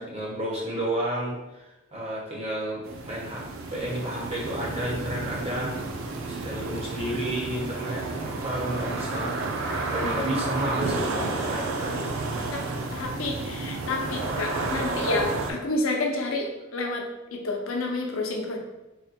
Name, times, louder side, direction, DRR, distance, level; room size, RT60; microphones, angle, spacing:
voice 1, 0.0-1.7 1.9-3.4 3.7-5.7 6.2-9.3 9.9-12.1, right 1 dB, 30° right, -5 dB, 1.2 m, -31 dB
sound 1, 2.8-15.5, right 3 dB, 70° right, 0.5 m, -31 dB
voice 2, 12.9-17.1 17.3-18.6, left 2 dB, 75° left, 1 dB, 0.7 m, -29 dB
4.0 x 2.2 x 4.2 m, 1.0 s
head